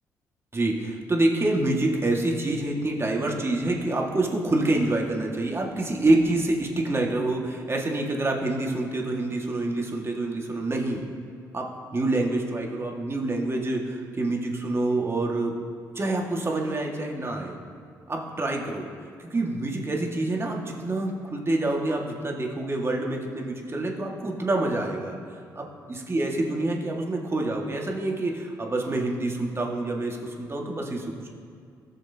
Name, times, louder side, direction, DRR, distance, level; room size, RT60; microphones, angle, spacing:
voice 1, 0.5-11.0 11.5-15.5 16.0-17.6 18.1-18.9 19.2-25.2 25.6-31.3, right 2 dB, 30° right, 0 dB, 2.0 m, -27 dB
16.5 x 6.5 x 2.9 m, 2.3 s
hypercardioid pair, 50°, 8 cm